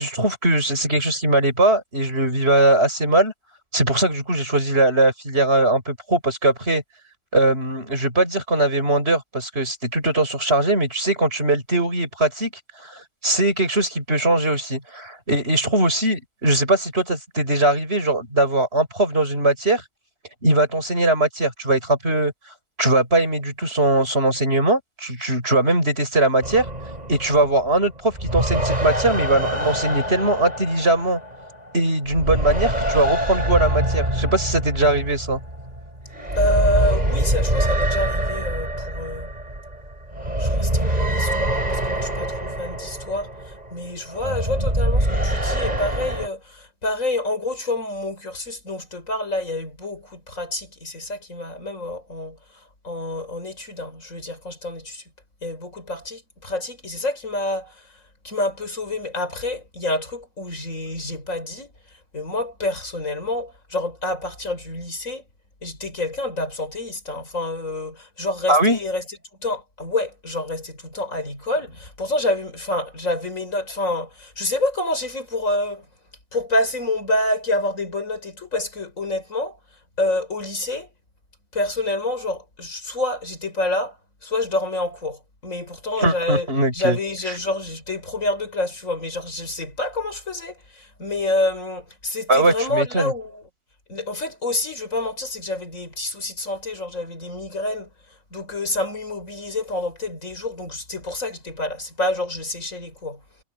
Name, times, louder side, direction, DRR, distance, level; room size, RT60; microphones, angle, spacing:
voice 1, 0.0-3.3 3.7-6.8 7.3-12.5 12.8-19.8 20.4-22.3 22.8-26.7 27.1-31.2 31.7-35.4 68.5-68.8 86.0-87.0 92.3-93.1, right 2 dB, 45° right, 7.0 m, -20 dB
sound 1, 26.4-31.8 32.1-46.3, right 1 dB, 30° right, 6.7 m, -25 dB
voice 2, 36.4-39.3 40.4-52.4 52.8-55.0 55.4-57.9 58.2-61.7 62.1-65.2 65.6-69.0 69.4-75.9 76.3-79.6 80.0-80.9 81.5-84.0 84.2-86.5 86.7-93.4 93.9-97.9 98.3-103.2, left 2 dB, 70° left, 6.2 m, -27 dB
omnidirectional pair, 1.4 m